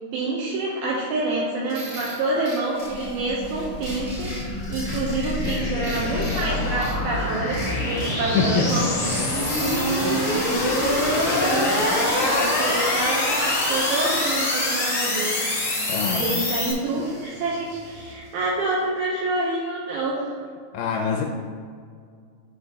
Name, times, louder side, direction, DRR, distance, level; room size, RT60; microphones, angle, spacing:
voice 1, 0.1-9.2 9.6-15.4 15.7-20.3, right 2 dB, 80° right, -4 dB, 2.6 m, -27 dB
sound 1, 1.7-18.7, equal, 50° right, 1.0 m, -39 dB
sound 2, 2.8-16.7, left 2 dB, 45° left, 1.0 m, -25 dB
sound 3, 3.1-7.4, left 3 dB, 65° left, 2.2 m, -41 dB
voice 2, 8.3-8.8 15.9-16.4 20.7-21.2, left 6 dB, 85° left, 1 dB, 2.4 m, -24 dB
9.9 x 5.6 x 2.8 m, 2.2 s
omnidirectional pair, 4.5 m